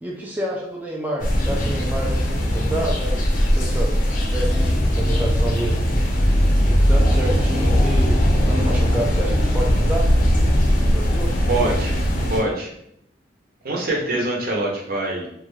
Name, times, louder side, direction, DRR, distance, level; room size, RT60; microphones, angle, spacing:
voice 1, 0.0-3.3 3.6-4.0 4.3-5.8 6.6-10.1 10.9-11.3, right 1 dB, 10° right, -3 dB, 0.3 m, -28 dB
sound 1, 1.2-12.4, equal, 50° left, 0.5 m, -19 dB
voice 2, 11.5-12.0 12.3-12.7 13.6-15.3, right 2 dB, 55° right, -1 dB, 0.7 m, -24 dB
2.4 x 2.2 x 3.1 m, 0.74 s
head